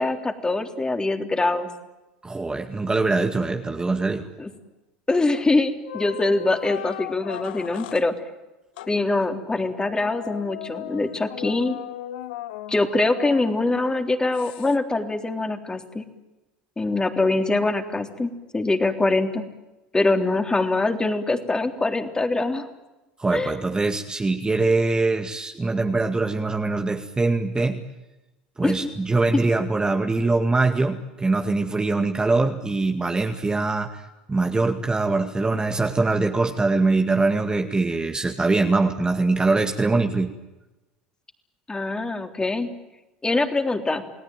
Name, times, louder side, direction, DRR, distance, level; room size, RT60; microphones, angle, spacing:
voice 1, 0.0-1.7 4.4-4.5 5.1-8.2 8.9-11.8 12.7-16.0 16.8-19.4 19.9-22.7 23.3-23.5 28.6-28.9 29.3-29.4 41.7-42.7 43.2-44.0, left 2 dB, 15° left, 6 dB, 3.5 m, -23 dB
voice 2, 2.2-4.3 23.2-27.8 28.6-40.3, right 3 dB, 15° right, 4 dB, 2.1 m, -23 dB
sound 1, 5.3-5.6 5.8-8.1 8.8-9.0 9.7-13.9 14.3-14.8, left 13 dB, 70° left, 1.2 m, -37 dB
29.5 x 18.5 x 9.2 m, 1.0 s
hypercardioid pair, 80°, 5 cm